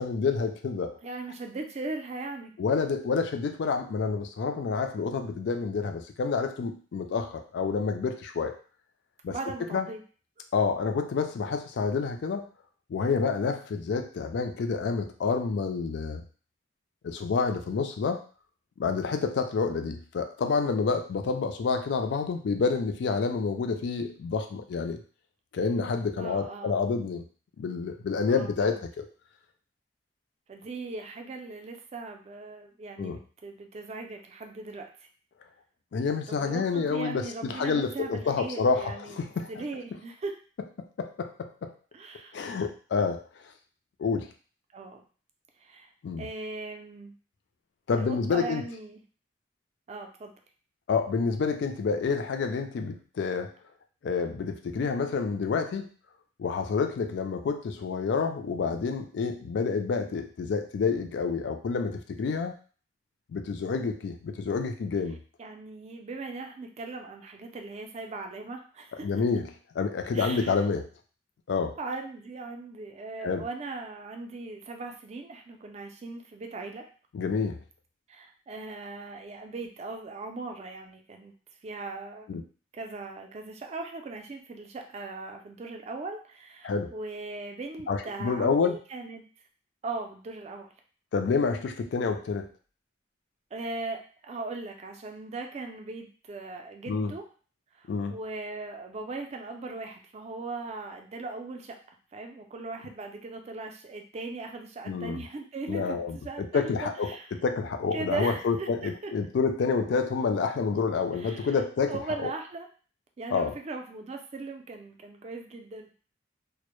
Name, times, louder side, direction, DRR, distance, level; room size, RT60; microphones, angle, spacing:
voice 1, 0.0-1.0 2.6-8.5 9.2-9.3 9.7-9.9 10.5-12.5 12.9-16.2 17.0-18.2 18.8-25.0 25.5-27.2 27.6-29.0 33.0-33.2 35.9-39.6 41.0-41.7 42.3-43.2 44.0-44.3 46.0-46.3 47.9-48.6 50.9-53.5 54.0-55.9 56.4-62.6 63.3-65.2 69.0-69.5 69.7-70.9 71.5-71.7 73.2-73.4 77.1-77.6 82.3-82.4 86.6-86.9 87.9-88.8 91.1-92.5 96.9-97.1 97.9-98.2 104.9-105.2 105.7-112.3 113.3-113.5, left 5 dB, 70° left, 6 dB, 0.3 m, -28 dB
voice 2, 1.0-2.5 9.3-10.0 26.2-26.7 28.3-28.8 30.5-35.1 36.3-39.2 39.5-40.3 41.9-42.5 44.7-45.0 45.6-45.9 46.2-47.1 48.0-49.0 49.9-50.3 65.4-69.1 70.1-70.6 71.8-76.8 78.1-81.3 81.6-82.3 82.7-89.2 89.8-90.7 93.5-97.2 97.7-101.8 102.1-107.4 107.9-109.1 111.1-112.7 113.2-115.9, right 3 dB, 35° right, 4 dB, 0.3 m, -39 dB
2.0 x 2.0 x 2.9 m, 0.39 s
head